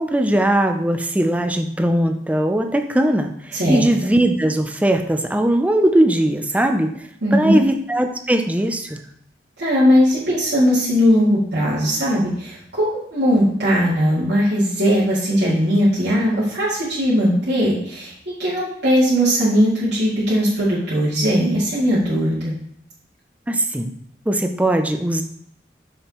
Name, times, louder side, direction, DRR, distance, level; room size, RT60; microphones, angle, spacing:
voice 1, 0.0-7.0 7.3-9.0 23.5-23.9 24.3-25.2, right 1 dB, 10° right, 6 dB, 0.5 m, -19 dB
voice 2, 7.2-7.6 9.6-22.5, equal, 80° right, -10 dB, 2.3 m, -19 dB
6.4 x 6.2 x 3.0 m, 0.71 s
head